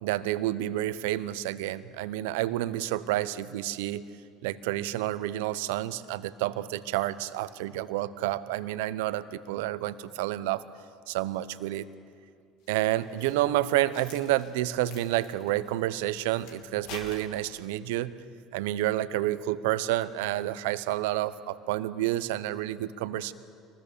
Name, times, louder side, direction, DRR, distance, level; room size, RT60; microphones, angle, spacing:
voice 1, 0.0-4.1 4.4-10.6 11.1-11.9 12.7-18.1 18.5-23.3, right 14 dB, 80° right, 15 dB, 0.8 m, -29 dB
sound 1, 12.6-17.8, left 5 dB, 70° left, 3.2 m, -49 dB
25.5 x 20.0 x 6.9 m, 2.3 s
hypercardioid pair, 70°, 0 cm